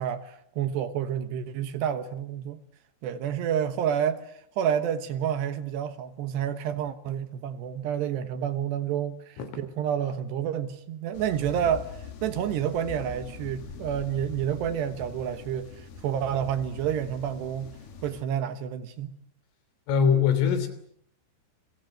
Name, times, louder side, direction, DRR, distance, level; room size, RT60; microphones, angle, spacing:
voice 1, 0.0-2.6 3.0-17.7 18.0-19.1, right 9 dB, 70° right, 3.1 m, -29 dB
sound 1, 11.1-18.2, left 5 dB, 55° left, 4.4 m, -43 dB
voice 2, 19.9-20.7, left 7 dB, 80° left, 5.6 m, -22 dB
29.5 x 23.0 x 7.9 m
omnidirectional pair, 5.6 m